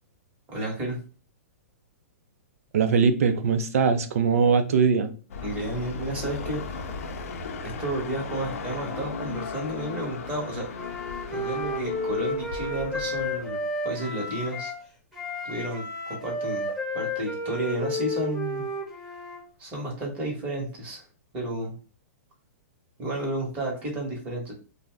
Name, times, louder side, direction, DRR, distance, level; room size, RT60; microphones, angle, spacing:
voice 1, 0.5-1.0 5.4-7.0 7.8-10.6 11.3-14.7 15.4-16.6 16.9-18.6 19.6-21.0 21.3-21.8 23.0-24.5, right 1 dB, 20° right, -1 dB, 1.0 m, -32 dB
voice 2, 2.7-5.1, right 5 dB, 75° right, 8 dB, 0.5 m, -21 dB
sound 1, 5.3-13.5, left 5 dB, 65° left, 0.5 m, -36 dB
Wind instrument woodwind instrument, 10.7-14.8 15.1-19.4, left 1 dB, ahead, 0.8 m, -32 dB
2.6 x 2.1 x 3.3 m, 0.37 s
hypercardioid pair, 155°, 8 cm